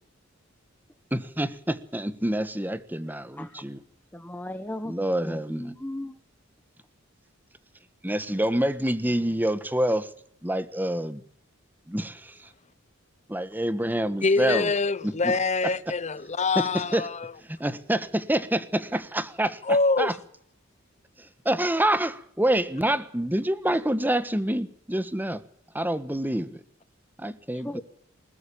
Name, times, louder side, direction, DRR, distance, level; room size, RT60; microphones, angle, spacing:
voice 1, 1.1-3.8 4.9-5.7 8.0-10.1 10.4-11.2 11.9-12.5 13.3-14.7 15.0-15.4 16.5-17.1 17.5-20.1 21.4-25.4 25.7-26.6 27.2-27.8, right 1 dB, 10° right, 1.3 m, -27 dB
voice 2, 3.0-3.6 4.1-5.0 5.2-6.1 27.6-27.8, left 1 dB, 10° left, 1.3 m, -37 dB
voice 3, 14.2-17.3 19.6-20.2, left 3 dB, 35° left, 1.0 m, -25 dB
20.5 x 20.0 x 6.9 m
head